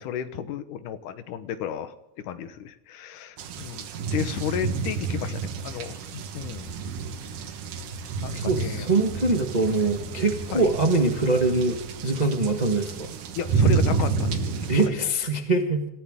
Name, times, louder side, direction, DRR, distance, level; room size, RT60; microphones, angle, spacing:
voice 1, 0.0-3.9 4.1-6.7 8.2-8.9 10.5-10.7 13.4-14.5 14.8-15.1, left 9 dB, 85° left, 11 dB, 2.7 m, -33 dB
sound 1, 3.4-14.9, right 5 dB, 85° right, 2.9 m, -29 dB
voice 2, 8.3-13.1 14.7-15.9, right 2 dB, 65° right, 4 dB, 0.4 m, -23 dB
26.0 x 15.0 x 3.7 m, 0.94 s
omnidirectional pair, 3.5 m